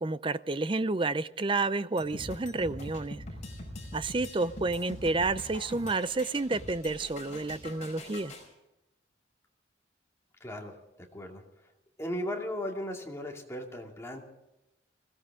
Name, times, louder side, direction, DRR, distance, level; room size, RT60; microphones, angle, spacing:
voice 1, 0.0-3.2 3.9-8.3, right 3 dB, 25° right, 15 dB, 0.5 m, -30 dB
sound 1, 2.0-8.5, left 1 dB, 35° left, 5.1 m, -43 dB
voice 2, 10.4-10.8 11.1-11.4 12.0-14.2, left 1 dB, 15° left, 1 dB, 2.4 m, -36 dB
21.5 x 17.0 x 3.6 m, 0.91 s
head